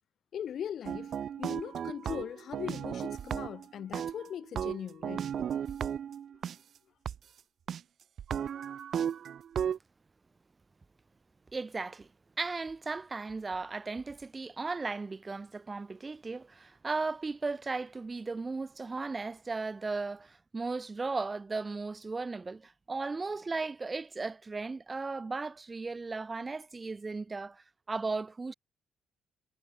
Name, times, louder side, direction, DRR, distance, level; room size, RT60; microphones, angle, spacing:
voice 1, 0.3-1.1 1.4-5.6, left 9 dB, 65° left, 3.2 m, -40 dB
sound 1, 0.9-3.7 3.9-6.6 7.1-7.2 7.7-7.8 8.2-9.8, right 8 dB, 60° right, 4.4 m, -35 dB
voice 2, 11.5-12.1 12.4-28.5, right 3 dB, 25° right, 3.5 m, -36 dB
cardioid pair, 90°, 0 cm